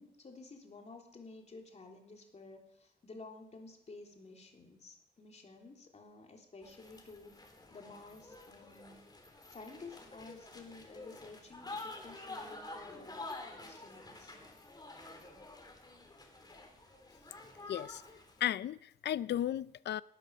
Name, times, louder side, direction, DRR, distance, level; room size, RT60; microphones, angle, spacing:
voice 1, 0.0-7.4 7.7-9.0 9.5-14.3, left 3 dB, 40° left, 3.3 m, -52 dB
sound 1, 6.6-18.4, left 2 dB, 25° left, 3.4 m, -49 dB
voice 2, 17.7-18.0 18.4-20.0, left 11 dB, 80° left, 0.5 m, -34 dB
19.0 x 10.5 x 6.3 m
cardioid pair, 110°, 17 cm